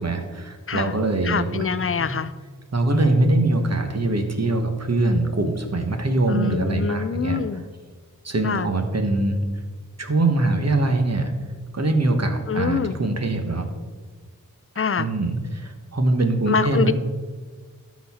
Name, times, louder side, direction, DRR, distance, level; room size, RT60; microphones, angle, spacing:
voice 1, 0.0-1.7 2.0-2.1 2.7-7.4 8.2-9.4 10.0-11.3 11.7-13.7 15.0-16.9, right 2 dB, 50° right, 5 dB, 1.1 m, -22 dB
voice 2, 1.2-2.3 6.3-7.6 8.4-8.7 12.5-13.0 14.8-15.1 16.5-16.9, left 6 dB, 40° left, 14 dB, 0.5 m, -25 dB
12.5 x 4.2 x 4.2 m, 1.5 s
wide cardioid pair, 50°, 33 cm